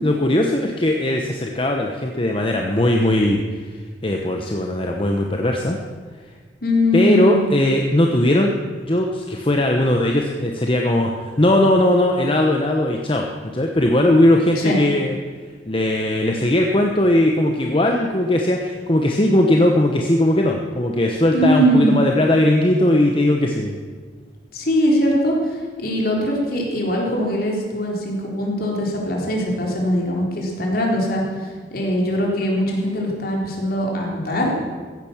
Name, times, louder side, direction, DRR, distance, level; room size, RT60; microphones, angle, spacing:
voice 1, 0.0-5.8 6.9-13.3 13.5-15.2 15.7-23.8, left 1 dB, 30° left, 1 dB, 1.0 m, -19 dB
voice 2, 6.6-7.4 14.6-14.8 21.3-22.0 24.5-34.5, equal, 55° left, -1 dB, 3.8 m, -21 dB
15.5 x 10.5 x 7.2 m, 1.5 s
head